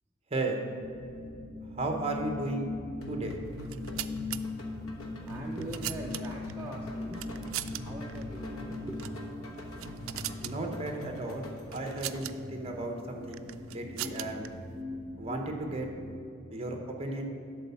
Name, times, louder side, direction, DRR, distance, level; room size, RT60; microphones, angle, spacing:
sound 1, 0.8-16.2, left 2 dB, 10° left, 0.9 m, -41 dB
voice 1, 1.7-2.7 3.1-3.4 10.4-14.4 15.2-15.9 16.5-17.3, right 2 dB, 30° right, 3 dB, 0.9 m, -34 dB
sound 2, 3.0-12.5, left 1 dB, 80° left, 1.1 m, -45 dB
sound 3, 3.6-4.4 5.3-6.5 7.1-7.8 8.1-8.2 8.9-9.2 9.6-10.6 11.7-12.3 13.3-14.5, right 14 dB, 75° right, 0.3 m, -39 dB
voice 2, 5.3-7.3 7.8-9.3 9.7-9.8 10.4-10.5 14.9-15.0, right 1 dB, 10° right, -3 dB, 0.5 m, -42 dB
11.0 x 4.2 x 6.9 m, 2.6 s
head